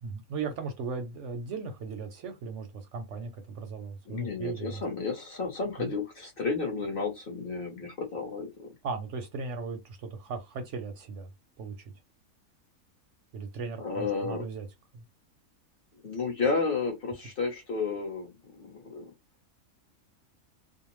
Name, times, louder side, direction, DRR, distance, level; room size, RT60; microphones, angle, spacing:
voice 1, 0.0-4.8 5.8-5.9 8.8-11.3 11.6-11.9 13.3-14.7 14.9-15.0, right 4 dB, 65° right, 0.8 m, -37 dB
voice 2, 4.1-8.7 13.8-14.4 15.9-19.1, left 4 dB, 45° left, 0.9 m, -32 dB
2.6 x 2.0 x 3.0 m
omnidirectional pair, 1.6 m